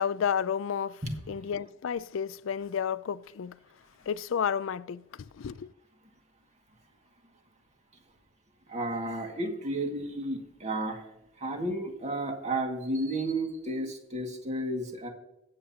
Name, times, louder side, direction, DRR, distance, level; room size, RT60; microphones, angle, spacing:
voice 1, 0.0-3.6 4.1-5.0 5.4-5.7, left 7 dB, 80° left, 0.4 m, -31 dB
voice 2, 8.7-11.0 11.4-15.1, right 1 dB, 35° right, 2.0 m, -32 dB
21.5 x 7.8 x 2.8 m
head